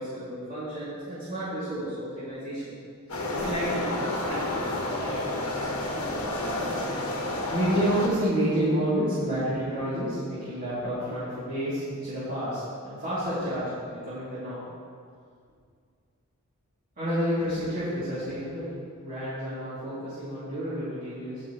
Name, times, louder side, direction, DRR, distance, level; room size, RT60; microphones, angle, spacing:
voice 1, 0.0-2.7 3.4-6.1 7.5-14.6 17.0-21.4, equal, 40° right, -13 dB, 2.4 m, -30 dB
sound 1, 3.1-8.1, left 1 dB, 75° left, 1.4 m, -30 dB
16.5 x 6.0 x 2.9 m, 2.2 s
head